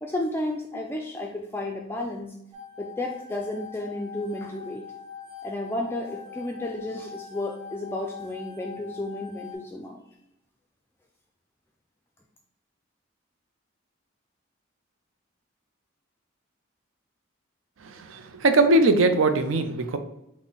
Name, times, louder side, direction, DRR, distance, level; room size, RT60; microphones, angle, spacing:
voice 1, 0.0-2.3 2.8-4.9 5.4-10.0, left 1 dB, 10° left, 1 dB, 0.3 m, -32 dB
sound 1, 2.5-9.5, left 7 dB, 25° right, 1.6 m, -42 dB
voice 2, 18.1-20.0, right 2 dB, 75° right, 8 dB, 0.5 m, -20 dB
6.1 x 2.1 x 3.9 m, 0.83 s
head